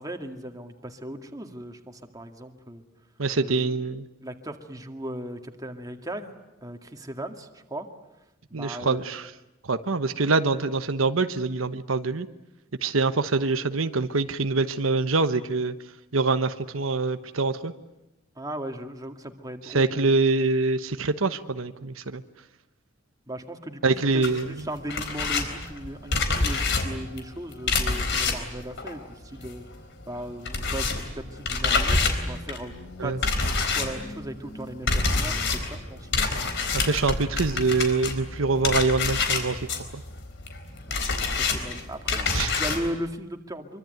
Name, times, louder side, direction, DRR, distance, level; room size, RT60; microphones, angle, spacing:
voice 1, 0.0-2.8 3.3-3.8 4.2-6.3 6.6-7.9 8.5-9.1 18.4-20.1 23.3-23.8 24.1-29.7 30.1-30.9 31.1-32.0 32.3-32.7 33.0-36.1 41.1-43.8, right 1 dB, 20° right, 4 dB, 2.2 m, -37 dB
voice 2, 3.2-4.1 8.5-9.3 9.7-12.3 12.8-15.7 16.1-17.7 19.7-22.2 23.8-24.5 33.0-33.2 36.7-39.6 39.9-40.0 42.3-42.5, right 3 dB, 90° right, 9 dB, 1.1 m, -25 dB
sound 1, 24.2-29.8 30.0-42.9, left 4 dB, 60° left, 4.1 m, -27 dB
25.0 x 24.5 x 9.3 m, 0.95 s
head